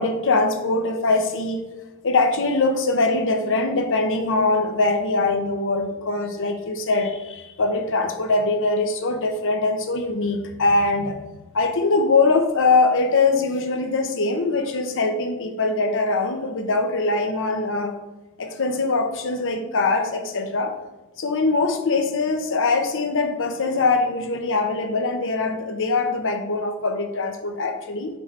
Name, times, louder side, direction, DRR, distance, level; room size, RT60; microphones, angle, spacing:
voice 1, 0.0-1.6 2.0-11.2 11.5-17.9 18.4-20.7 21.2-28.1, left 3 dB, 60° left, 5 dB, 0.9 m, -22 dB
6.3 x 4.5 x 4.7 m, 1.1 s
head